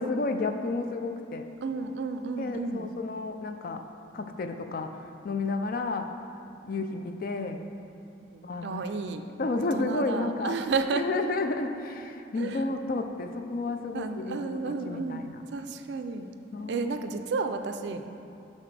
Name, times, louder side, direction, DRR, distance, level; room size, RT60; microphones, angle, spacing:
voice 1, 0.0-1.5 2.4-3.8 4.1-5.0 5.2-6.1 6.7-7.6 8.4-8.8 9.4-10.5 10.9-15.4 16.5-16.8, left 3 dB, 50° left, 6 dB, 0.4 m, -31 dB
voice 2, 1.6-2.9 6.7-6.8 8.2-9.3 9.5-11.1 12.4-12.6 13.9-16.3 16.7-18.0, right 4 dB, 65° right, 7 dB, 0.3 m, -32 dB
10.5 x 4.3 x 3.3 m, 2.6 s
head